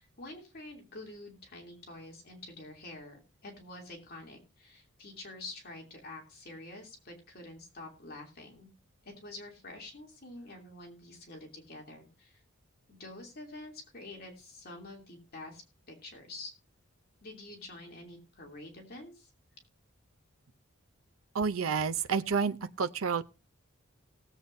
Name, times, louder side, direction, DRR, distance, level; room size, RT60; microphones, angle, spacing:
voice 1, 0.0-8.7 9.0-12.4 12.9-16.5 17.2-19.3, left 2 dB, 50° left, 2.9 m, -47 dB
voice 2, 21.3-23.2, right 5 dB, 80° right, 0.6 m, -30 dB
18.5 x 8.0 x 2.7 m
head